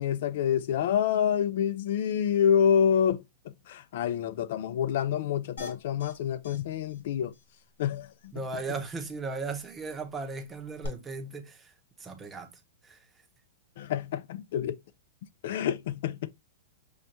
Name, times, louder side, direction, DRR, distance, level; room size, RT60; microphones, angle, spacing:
voice 1, 0.0-3.2 3.7-7.3 7.8-8.1 8.3-8.4 13.8-14.8 15.4-16.3, left 8 dB, 60° left, 0.3 m, -27 dB
sound 1, 5.6-6.1 6.4-6.6 6.9-7.0 7.3-7.4 10.8-10.9, left 3 dB, 80° left, 1.6 m, -42 dB
voice 2, 8.3-11.7 12.0-13.0, right 4 dB, 10° right, 0.7 m, -37 dB
6.3 x 2.2 x 2.8 m
hypercardioid pair, 155°, 0 cm